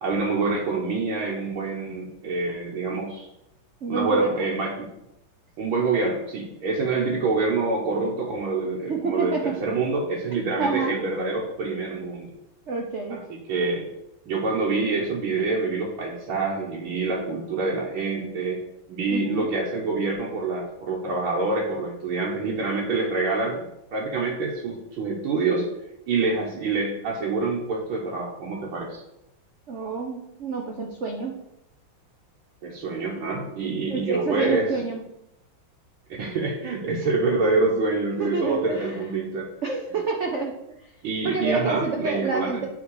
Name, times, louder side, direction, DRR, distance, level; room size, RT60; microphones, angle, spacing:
voice 1, 0.0-3.3 3.9-4.9 5.6-12.3 13.1-13.2 13.5-13.9 14.3-18.6 18.9-23.7 23.9-25.7 26.1-29.0 32.6-34.7 36.2-39.5 41.0-42.6, right 3 dB, 75° right, -4 dB, 1.9 m, -26 dB
voice 2, 3.8-4.4 8.6-9.6 10.6-10.9 12.7-13.2 19.1-19.5 29.7-31.4 33.9-35.0 38.2-39.0 39.6-40.9 41.2-42.7, right 4 dB, 90° right, 1 dB, 0.6 m, -28 dB
9.7 x 3.6 x 4.7 m, 0.85 s
omnidirectional pair, 2.3 m